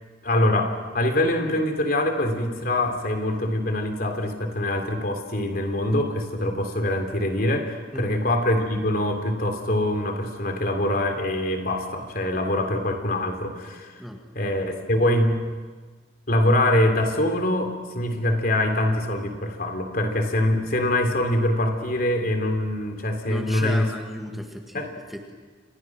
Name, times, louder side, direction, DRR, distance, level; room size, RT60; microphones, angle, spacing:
voice 1, 0.2-14.0 14.3-15.4 16.3-23.9 24.7-24.9, left 1 dB, 50° left, 5 dB, 3.3 m, -24 dB
voice 2, 23.3-25.3, equal, ahead, 2 dB, 1.9 m, -35 dB
30.0 x 27.0 x 6.2 m, 1.4 s
head